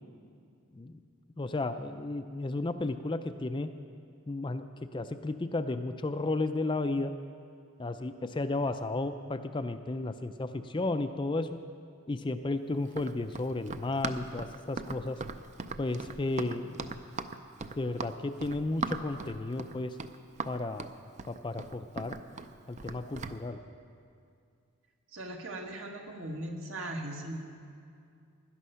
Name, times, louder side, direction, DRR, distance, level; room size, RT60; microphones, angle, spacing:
voice 1, 1.4-3.7 4.3-7.1 7.8-11.5 12.1-15.2 15.8-17.2 17.8-20.0 20.5-20.9 21.3-22.2 22.7-23.6, left 2 dB, 20° left, 8 dB, 0.4 m, -33 dB
Run, 12.9-23.4, right 4 dB, 30° right, 0.5 m, -39 dB
voice 2, 25.1-27.4, right 1 dB, 60° right, 2 dB, 1.7 m, -39 dB
17.5 x 11.0 x 5.7 m, 2.4 s
head